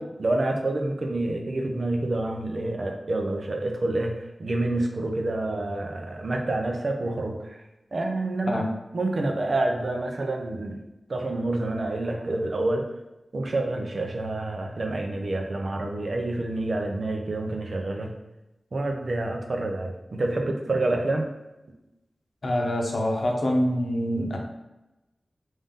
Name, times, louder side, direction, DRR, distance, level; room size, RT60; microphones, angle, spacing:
voice 1, 0.0-7.6 7.9-8.6 8.9-10.8 11.1-12.8 13.3-18.1 18.7-21.3, right 2 dB, 60° right, 2 dB, 0.6 m, -28 dB
voice 2, 22.4-24.4, left 1 dB, 55° left, 0 dB, 0.8 m, -25 dB
3.8 x 2.6 x 3.6 m, 1.0 s
wide cardioid pair, 90°, 0 cm